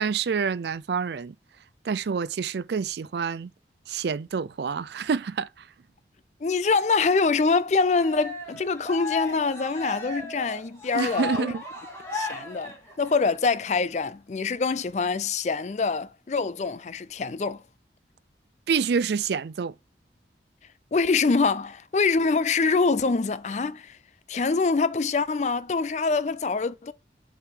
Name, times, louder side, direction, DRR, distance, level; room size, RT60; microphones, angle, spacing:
voice 1, 0.0-1.3 1.8-3.5 3.9-5.7 10.9-11.6 18.7-19.7, right 6 dB, 70° right, 0.4 m, -27 dB
voice 2, 6.4-11.5 12.1-17.6 20.9-24.0 24.3-26.9, left 4 dB, 40° left, 0.4 m, -25 dB
Cheering, 7.9-13.3, left 3 dB, 15° left, 2.5 m, -35 dB
7.2 x 5.0 x 3.7 m
head